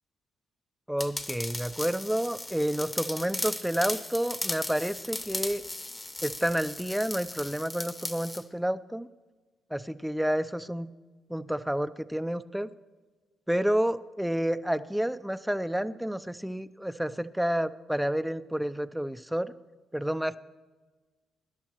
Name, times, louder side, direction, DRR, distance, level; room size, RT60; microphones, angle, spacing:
voice 1, 0.9-5.6 6.2-9.1 9.7-10.9 11.3-12.7 13.5-19.5 19.9-20.4, equal, 5° right, 13 dB, 0.5 m, -30 dB
sound 1, 1.0-8.4, left 2 dB, 20° left, 1.0 m, -37 dB
23.0 x 11.0 x 3.0 m, 1.3 s
cardioid pair, 85°, 0 cm